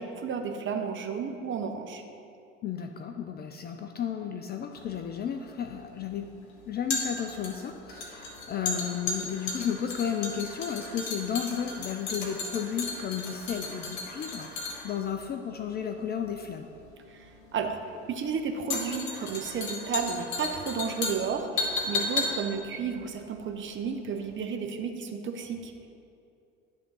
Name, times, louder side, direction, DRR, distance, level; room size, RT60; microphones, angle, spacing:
voice 1, 0.0-2.0 17.1-17.8 18.1-25.9, right 6 dB, 30° right, 4 dB, 0.8 m, -32 dB
voice 2, 2.6-6.3 6.7-16.7, left 8 dB, 25° left, 5 dB, 0.4 m, -33 dB
sound 1, 4.8-24.0 24.3-24.4, left 3 dB, 60° left, 1.7 m, -35 dB
11.0 x 3.6 x 5.5 m, 2.6 s
figure-of-eight pair, 65°, 37 cm